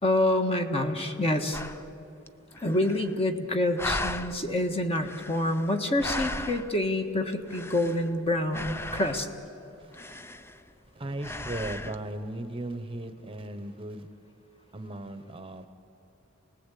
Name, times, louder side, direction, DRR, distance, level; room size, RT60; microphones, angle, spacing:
voice 1, 0.0-1.6 2.6-9.3, left 1 dB, 30° left, 4 dB, 1.5 m, -27 dB
sound 1, 1.5-1.9 2.3-2.4 2.5-3.4 3.8-4.4 4.9-6.8 7.3-8.2 8.5-9.4 9.9-10.9 11.2-12.0, left 2 dB, 10° left, 0.5 m, -36 dB
voice 2, 10.9-14.1 14.7-15.7, right 1 dB, 25° right, 8 dB, 1.0 m, -37 dB
27.0 x 19.5 x 8.4 m, 2.9 s
head